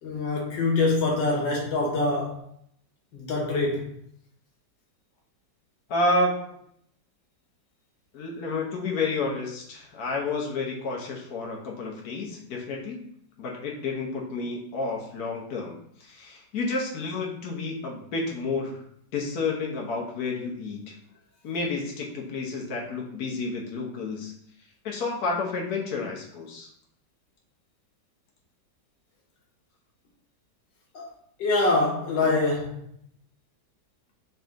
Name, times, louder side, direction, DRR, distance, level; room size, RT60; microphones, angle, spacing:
voice 1, 0.0-2.4 3.1-4.0 30.9-31.1 31.4-32.8, left 3 dB, 90° left, 1.8 m, -25 dB
voice 2, 5.9-6.6 8.1-13.0 13.4-15.7 16.0-18.8 19.1-20.9 21.4-24.3 24.8-26.7, left 3 dB, 60° left, 1.3 m, -30 dB
4.2 x 3.3 x 3.6 m
omnidirectional pair, 1.9 m